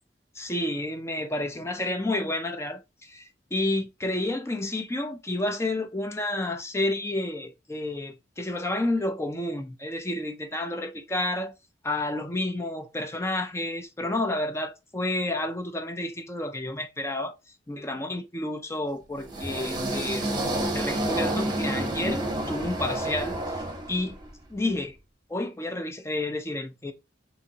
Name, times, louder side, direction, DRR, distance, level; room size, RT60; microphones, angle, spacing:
voice 1, 0.4-11.5 11.8-17.3 17.7-20.4 20.7-23.6 23.9-24.2 24.5-25.0 25.3-26.9, left 1 dB, 15° left, 0.4 m, -30 dB
sound 1, 19.2-24.3, right 1 dB, 25° right, 0.9 m, -29 dB
3.5 x 2.9 x 2.7 m
head